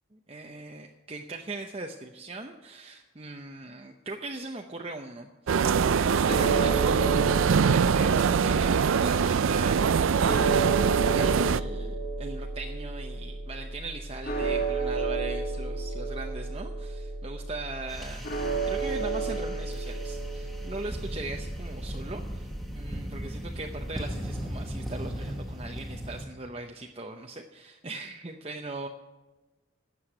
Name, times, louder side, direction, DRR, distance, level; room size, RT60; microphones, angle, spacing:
voice 1, 0.1-18.2 18.7-22.5 22.7-28.9, right 2 dB, 30° right, 2 dB, 0.7 m, -40 dB
sound 1, 5.5-11.6, right 6 dB, 85° right, 0.4 m, -23 dB
sound 2, 5.6-24.0, right 3 dB, 50° left, 2.0 m, -33 dB
sound 3, 17.9-26.2, equal, ahead, 1.4 m, -38 dB
13.0 x 7.8 x 8.9 m, 1.2 s
head